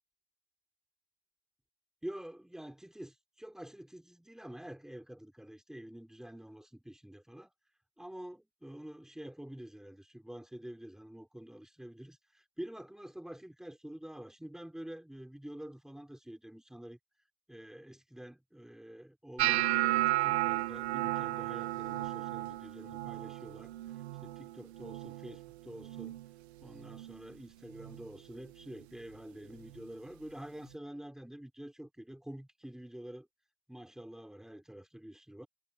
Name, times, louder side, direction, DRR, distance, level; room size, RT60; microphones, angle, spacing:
voice 1, 2.0-7.5 8.0-17.0 17.5-23.7 24.2-26.2 26.6-33.3 33.7-35.5, right 1 dB, ahead, 4.6 m, -47 dB
sound 1, 19.4-25.5 25.8-26.3 26.6-27.2 27.8-28.0 29.8-29.9, right 16 dB, 65° right, 1.3 m, -33 dB
supercardioid pair, 140°, 34 cm